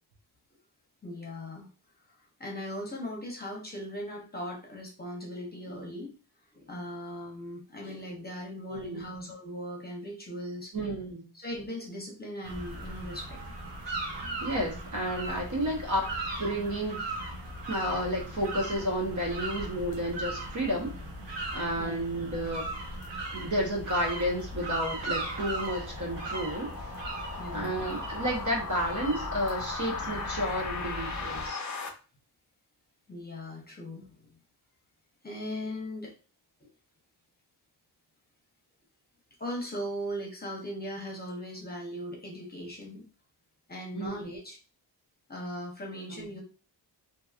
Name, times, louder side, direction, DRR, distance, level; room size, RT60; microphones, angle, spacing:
voice 1, 1.0-1.7 2.2-6.1 6.5-10.7 11.3-13.4 21.7-22.0 27.4-27.8 33.1-34.3 35.2-36.1 36.6-36.7 39.4-43.0 43.7-44.6 45.3-46.4, equal, 20° left, -2 dB, 0.8 m, -39 dB
voice 2, 8.7-9.1 10.7-11.3 14.4-16.1 16.4-17.1 17.7-20.9 21.5-22.6 23.3-26.9 27.5-31.6 43.9-44.2 46.1-46.3, equal, 45° right, -1 dB, 1.0 m, -31 dB
sound 1, 12.4-31.5, right 2 dB, 90° right, 0.9 m, -38 dB
sound 2, 23.2-31.9, left 4 dB, 45° left, 0.6 m, -39 dB
2.9 x 2.7 x 2.4 m, 0.35 s
wide cardioid pair, 135°, 42 cm